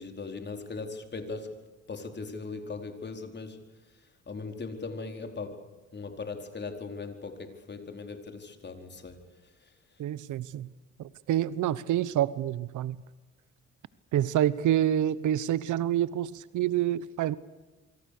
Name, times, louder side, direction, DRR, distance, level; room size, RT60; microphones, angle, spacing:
voice 1, 0.0-1.6 1.9-3.6 4.3-9.7, left 4 dB, 35° left, 4.5 m, -39 dB
voice 2, 10.0-10.7 11.0-12.9 14.1-17.4, right 11 dB, 80° right, 1.2 m, -27 dB
28.0 x 24.5 x 6.8 m
cardioid pair, 90°, 30 cm